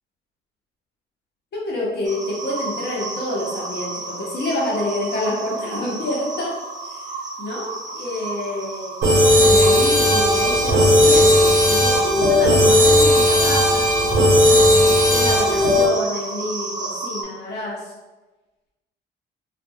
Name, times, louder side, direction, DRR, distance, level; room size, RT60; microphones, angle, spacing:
voice 1, 1.5-6.5 6.9-7.1 7.4-9.0 9.4-14.2 14.7-17.9, left 1 dB, 60° left, -4 dB, 1.0 m, -28 dB
sound 1, 2.0-17.2, right 3 dB, 40° right, 0.5 m, -31 dB
sound 2, 9.0-15.9, left 1 dB, 90° right, 0.8 m, -15 dB
2.5 x 2.5 x 2.7 m, 1.2 s
cardioid pair, 90°, 20 cm